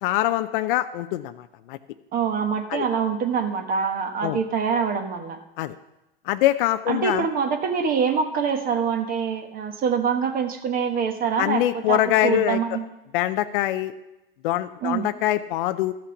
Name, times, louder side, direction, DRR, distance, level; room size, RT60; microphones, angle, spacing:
voice 1, 0.0-1.8 2.7-2.9 4.2-4.4 5.6-5.7 6.2-7.3 11.4-12.6 13.1-13.9 14.4-15.9, left 14 dB, 60° left, 10 dB, 0.5 m, -23 dB
voice 2, 2.1-5.4 6.9-12.8 14.8-15.1, right 6 dB, 30° right, 6 dB, 1.2 m, -25 dB
13.5 x 5.8 x 7.0 m, 0.97 s
hypercardioid pair, 125°, 30 cm